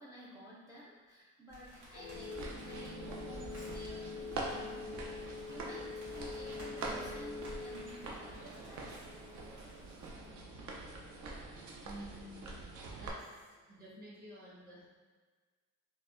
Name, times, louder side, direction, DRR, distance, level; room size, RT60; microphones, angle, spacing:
voice 1, 0.0-9.0, equal, 10° right, -6 dB, 0.3 m, -53 dB
sound 1, 1.5-10.1, right 1 dB, 80° right, 1.4 m, -56 dB
sound 2, 1.9-12.9, left 4 dB, 55° left, 0.4 m, -47 dB
sound 3, 2.1-13.1, right 2 dB, 65° right, 0.6 m, -45 dB
voice 2, 11.8-12.6 13.0-13.2 13.6-14.9, right 1 dB, 30° right, -7 dB, 1.1 m, -50 dB
4.5 x 2.1 x 2.5 m, 1.4 s
cardioid pair, 145°, 31 cm